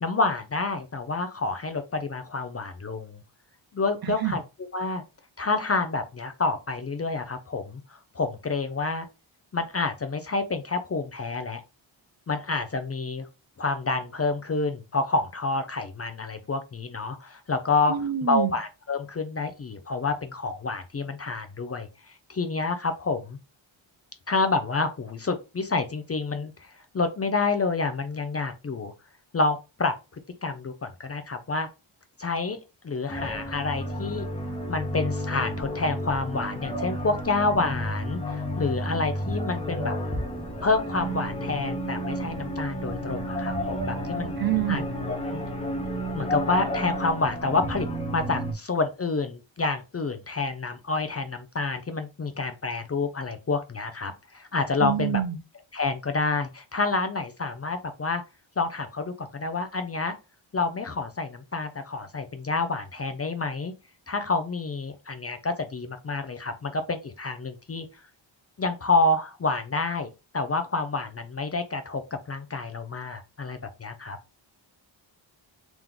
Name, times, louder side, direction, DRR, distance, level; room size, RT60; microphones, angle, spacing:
voice 1, 0.0-3.2 3.7-4.4 4.7-5.0 5.4-9.1 9.5-11.6 12.3-13.3 13.6-17.9 18.3-23.4 24.3-28.9 29.3-29.9 30.4-31.7 32.2-32.6 32.8-34.3 34.7-39.9 40.6-44.3 44.7-44.8 45.1-45.4 46.1-47.9 48.1-55.2 55.7-58.2 58.6-60.1 60.5-63.7 64.1-67.9 68.6-70.1 70.3-72.0 72.3-74.2, left 3 dB, 30° left, 0.4 m, -28 dB
voice 2, 4.0-4.4 17.9-18.6 44.4-44.8 54.8-55.4, right 12 dB, 50° right, 0.7 m, -26 dB
sound 1, 33.1-48.5, equal, 15° left, 0.8 m, -31 dB
3.7 x 3.0 x 3.5 m
wide cardioid pair, 140°, 48 cm